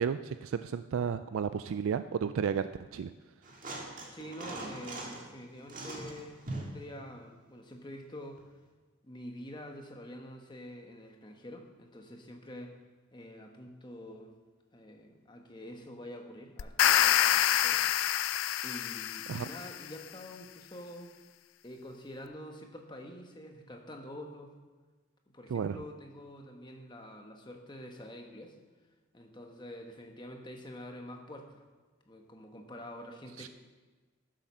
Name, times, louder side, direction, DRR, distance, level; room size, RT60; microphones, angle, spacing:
voice 1, 0.0-2.7 2.9-3.1 19.3-19.5 25.5-25.8 33.4-33.5, right 7 dB, 70° right, 12 dB, 0.3 m, -32 dB
sound 1, 3.4-5.3 5.7-6.8 8.4-8.5, right 2 dB, 40° right, 1.8 m, -41 dB
voice 2, 4.1-8.4 9.0-12.8 13.1-14.3 14.7-18.2 18.6-21.1 21.6-24.5 25.3-28.6 29.1-31.7 32.1-33.5, equal, 20° left, 3 dB, 1.1 m, -47 dB
sound 2, 16.6-19.8, left 11 dB, 65° left, 0.4 m, -27 dB
11.5 x 7.7 x 6.2 m, 1.3 s
head